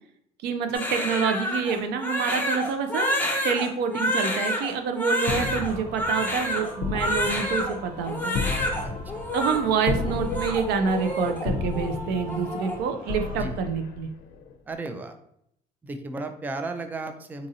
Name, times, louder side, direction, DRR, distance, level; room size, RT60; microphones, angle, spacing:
voice 1, 0.4-3.1 3.4-8.4 9.3-14.1, right 6 dB, 80° right, 7 dB, 0.5 m, -27 dB
Crying sobbing, 0.7-7.7 8.0-8.8 9.1-9.6 10.1-11.4 11.7-12.0 12.3-12.8, left 1 dB, 10° left, 0.8 m, -28 dB
sound 1, 5.2-14.5, left 4 dB, 80° left, 0.5 m, -34 dB
Male singing / Female singing / Musical instrument, 5.7-13.4, right 1 dB, 55° right, 1.1 m, -41 dB
voice 2, 14.7-15.1 15.8-17.5, right 2 dB, 10° right, 7 dB, 0.3 m, -34 dB
3.9 x 2.5 x 2.7 m, 0.71 s
cardioid pair, 110°, 17 cm